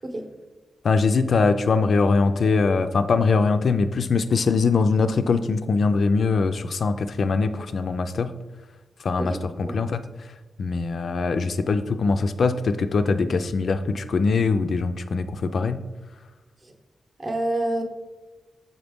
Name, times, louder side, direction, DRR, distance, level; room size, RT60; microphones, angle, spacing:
voice 1, 0.8-8.3 9.0-10.3 10.6-15.8, left 4 dB, 55° left, 9 dB, 0.3 m, -22 dB
voice 2, 9.2-9.8 16.6-16.7 17.2-17.8, right 1 dB, 35° right, 4 dB, 0.8 m, -28 dB
7.0 x 3.9 x 3.5 m, 1.2 s
wide cardioid pair, 140°, 0 cm